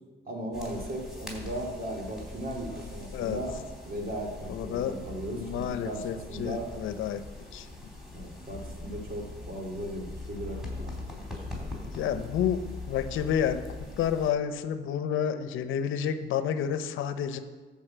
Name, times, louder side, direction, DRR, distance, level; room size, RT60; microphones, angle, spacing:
voice 1, 0.3-3.6 3.8-6.7 8.1-10.9, right 1 dB, 45° right, 1 dB, 2.8 m, -37 dB
sound 1, 0.5-14.3, left 2 dB, ahead, 3.6 m, -41 dB
voice 2, 4.5-5.0 5.3-7.2 7.5-7.7 11.9-13.6 14.0-17.4, left 8 dB, 80° left, 11 dB, 0.8 m, -30 dB
13.5 x 5.5 x 7.5 m, 1.4 s
cardioid pair, 90°, 20 cm